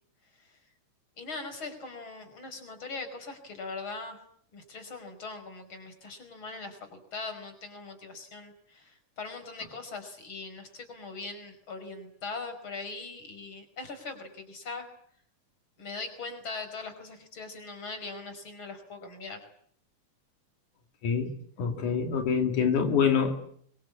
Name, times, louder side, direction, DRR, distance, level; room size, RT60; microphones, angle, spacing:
voice 1, 1.2-4.2 4.5-14.9 15.8-19.5, left 3 dB, 40° left, 8 dB, 6.0 m, -41 dB
voice 2, 21.6-23.4, left 6 dB, 90° left, 5 dB, 4.0 m, -25 dB
25.5 x 24.5 x 8.6 m, 0.63 s
omnidirectional pair, 3.4 m